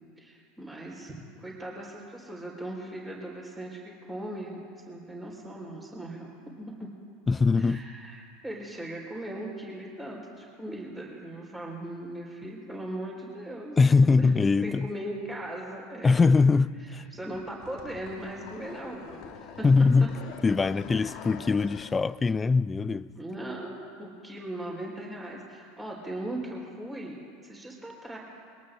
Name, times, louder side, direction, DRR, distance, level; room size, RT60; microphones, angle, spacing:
voice 1, 0.2-1.1 1.4-6.3 6.6-6.9 7.6-13.8 14.2-14.3 14.6-16.2 17.1-19.6 20.9-21.2 23.1-28.2, right 1 dB, 15° right, 4.5 m, -39 dB
voice 2, 7.3-7.9 13.8-14.9 16.0-17.1 19.6-20.1 20.4-23.1, left 4 dB, 20° left, 0.3 m, -22 dB
sound 1, 17.3-22.0, left 8 dB, 50° left, 1.0 m, -45 dB
23.5 x 18.5 x 2.7 m
figure-of-eight pair, 75°, 0 cm